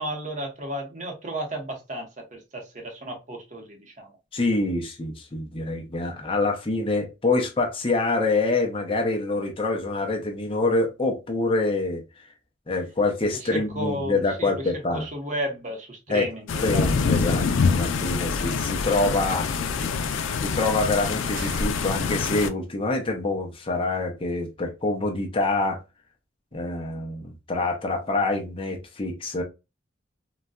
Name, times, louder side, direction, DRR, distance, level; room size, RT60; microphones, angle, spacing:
voice 1, 0.0-4.1 13.5-16.9, right 1 dB, 40° right, 0.9 m, -33 dB
voice 2, 4.3-12.3 12.7-15.1 16.1-16.3 16.6-19.5 20.4-25.8 26.5-29.4, left 2 dB, 30° left, 0.6 m, -26 dB
sound 1, 16.5-22.5, left 5 dB, 90° left, 0.4 m, -25 dB
sound 2, 21.4-22.4, right 4 dB, 70° right, 0.8 m, -44 dB
3.9 x 2.2 x 2.3 m
head